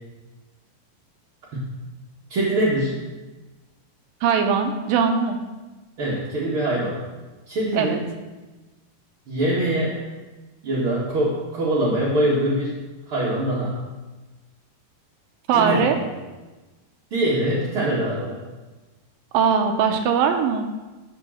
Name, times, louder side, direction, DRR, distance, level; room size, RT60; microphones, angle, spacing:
voice 1, 2.3-3.0 6.0-7.0 7.5-8.0 9.3-10.0 10.6-12.8 13.1-13.8 15.5-16.2 17.1-18.4, right 1 dB, 55° right, -6 dB, 1.6 m, -23 dB
voice 2, 4.2-5.4 7.7-8.0 15.5-16.0 19.3-20.7, right 6 dB, 75° right, 5 dB, 2.2 m, -20 dB
14.5 x 4.8 x 6.3 m, 1.2 s
omnidirectional pair, 4.6 m